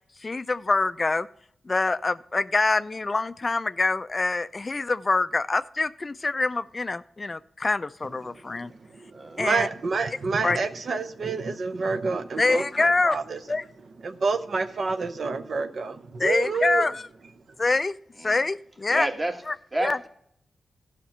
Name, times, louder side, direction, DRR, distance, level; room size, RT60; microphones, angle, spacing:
voice 1, 0.2-1.3 1.7-8.7 9.4-9.7 10.4-10.6 12.4-13.2 13.5-13.6 16.2-17.1 17.6-17.9 18.2-19.1 19.5-19.6 19.8-20.0, left 3 dB, 35° left, 0.3 m, -25 dB
voice 2, 8.5-13.4 14.0-16.9, right 4 dB, 60° right, 0.6 m, -28 dB
voice 3, 9.1-9.4 18.2-18.4 18.9-19.4 19.7-20.1, right 1 dB, 25° right, 1.5 m, -30 dB
13.0 x 5.9 x 5.4 m
cardioid pair, 65°, 0 cm